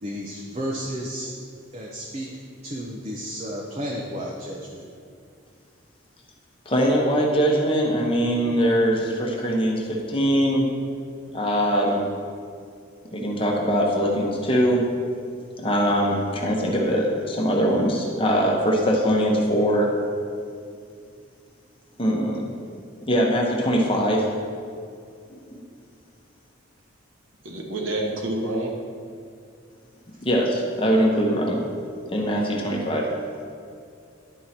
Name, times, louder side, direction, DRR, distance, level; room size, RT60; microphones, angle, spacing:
voice 1, 0.0-1.3 1.7-2.3 2.6-4.8, equal, 30° right, -2 dB, 0.6 m, -32 dB
voice 2, 6.7-10.7 11.3-12.0 13.1-14.8 15.6-19.9 22.0-22.5 23.1-24.3 25.3-25.6 30.2-31.6 32.0-33.1, equal, 25° left, -1 dB, 1.0 m, -22 dB
voice 3, 27.4-28.7, right 1 dB, 75° right, 0 dB, 1.2 m, -28 dB
11.0 x 4.6 x 4.3 m, 2.3 s
head